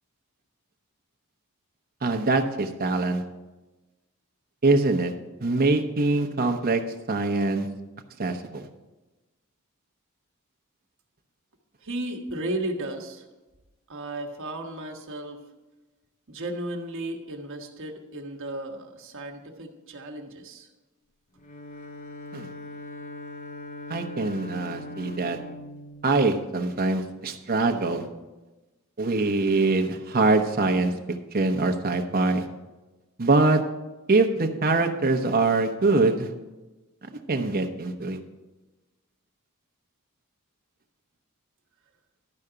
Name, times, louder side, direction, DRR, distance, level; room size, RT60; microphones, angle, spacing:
voice 1, 2.0-3.2 4.6-5.1 5.4-6.8 7.1-7.7 8.2-8.7 22.3-22.5 23.9-25.4 26.0-28.1 29.0-30.9 31.3-32.5 33.2-33.6 34.1-36.3 37.0-38.2, right 3 dB, 45° right, 5 dB, 0.9 m, -23 dB
voice 2, 11.8-13.3 13.9-15.5 16.3-20.7, right 1 dB, 65° right, 3 dB, 1.3 m, -34 dB
Bowed string instrument, 21.4-27.0, left 1 dB, 35° left, 0.7 m, -41 dB
12.0 x 4.9 x 6.7 m, 1.1 s
head